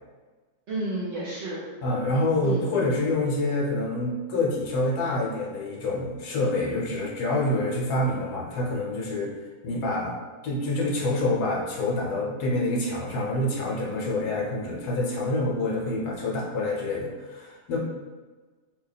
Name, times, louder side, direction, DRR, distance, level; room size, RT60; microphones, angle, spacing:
voice 1, 0.7-1.6 2.4-2.9, right 1 dB, 60° right, -7 dB, 0.7 m, -32 dB
voice 2, 1.8-9.3 9.6-17.8, left 2 dB, 70° left, -2 dB, 1.1 m, -27 dB
2.8 x 2.1 x 3.9 m, 1.3 s
omnidirectional pair, 1.8 m